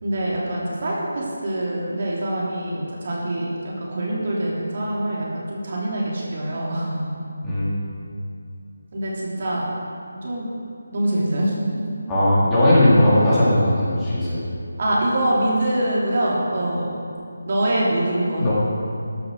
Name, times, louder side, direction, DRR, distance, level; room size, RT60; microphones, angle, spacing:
voice 1, 0.0-7.2 8.9-9.7 10.2-10.5 10.9-11.5 14.8-16.9 17.4-18.4, right 1 dB, 45° right, -5 dB, 3.3 m, -24 dB
voice 2, 12.1-14.4 18.4-18.5, left 1 dB, 10° left, -11 dB, 3.5 m, -17 dB
13.5 x 7.6 x 6.6 m, 2.5 s
figure-of-eight pair, 160°, 0 cm